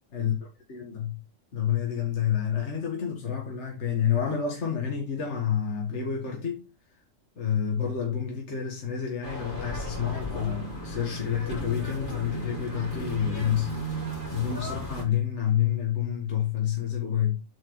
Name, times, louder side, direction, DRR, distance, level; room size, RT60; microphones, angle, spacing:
voice 1, 0.7-1.2 1.5-6.6 7.4-13.7 14.3-17.4, left 9 dB, 60° left, 1.9 m, -28 dB
sound 1, 9.2-15.0, right 1 dB, 40° left, 4.3 m, -35 dB
8.3 x 5.9 x 3.1 m
omnidirectional pair, 1.4 m